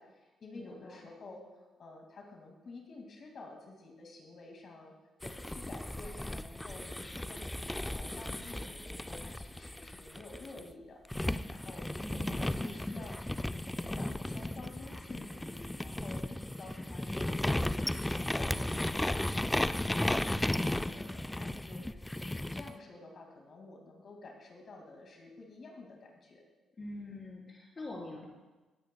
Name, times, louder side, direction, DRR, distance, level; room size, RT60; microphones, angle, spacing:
voice 1, 0.0-4.9 5.2-11.0 11.5-13.2 13.5-26.4, left 3 dB, 50° left, 1 dB, 2.1 m, -50 dB
voice 2, 0.5-1.0 12.0-12.7 26.8-28.3, left 2 dB, 30° left, -2 dB, 3.8 m, -45 dB
sound 1, 5.2-10.6 11.1-22.7, left 1 dB, 10° left, 0.3 m, -35 dB
19.5 x 9.2 x 2.2 m, 1.2 s
cardioid pair, 90°, 0 cm